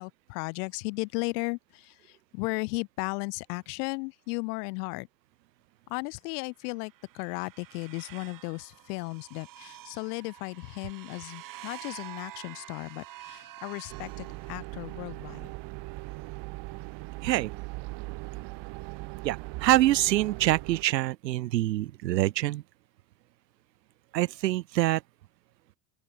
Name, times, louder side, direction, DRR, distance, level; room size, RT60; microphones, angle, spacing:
voice 1, 0.0-5.1 5.9-15.5, left 31 dB, 70° left, 2.9 m, -35 dB
sound 1, 6.7-15.0, right 14 dB, 40° right, 2.9 m, -48 dB
sound 2, 13.9-20.8, right 23 dB, 55° right, 6.7 m, -39 dB
voice 2, 19.2-22.6 24.1-25.0, right 15 dB, 90° right, 2.6 m, -25 dB
open air
supercardioid pair, 115°, 49 cm